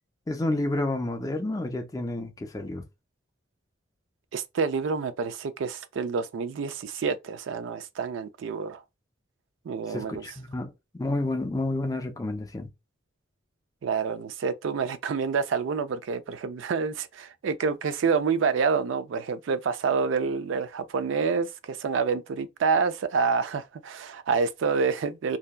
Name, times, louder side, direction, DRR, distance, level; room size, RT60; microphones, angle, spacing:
voice 1, 0.3-2.8 9.9-12.7, left 2 dB, 20° left, 0.3 m, -30 dB
voice 2, 4.3-8.8 9.7-10.2 13.8-25.4, right 5 dB, 80° right, 0.3 m, -28 dB
2.7 x 2.2 x 2.2 m
head